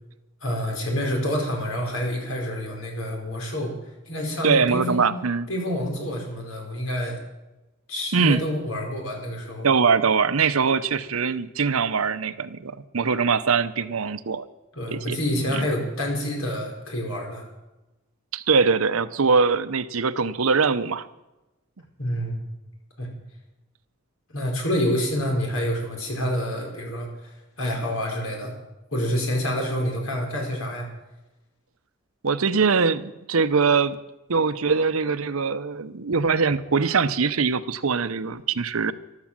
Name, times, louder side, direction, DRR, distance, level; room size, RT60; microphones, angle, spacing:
voice 1, 0.4-3.7 4.1-5.1 5.5-7.2 7.9-9.7 14.7-17.4 22.0-22.4 23.0-23.1 24.3-28.5 28.9-30.9, equal, 80° left, 1 dB, 5.0 m, -28 dB
voice 2, 4.4-5.5 8.1-8.4 9.6-14.4 14.9-15.2 15.5-15.6 18.3-21.1 32.2-34.0 34.3-38.9, right 5 dB, 90° right, 14 dB, 0.8 m, -22 dB
13.5 x 12.5 x 7.5 m, 1.0 s
head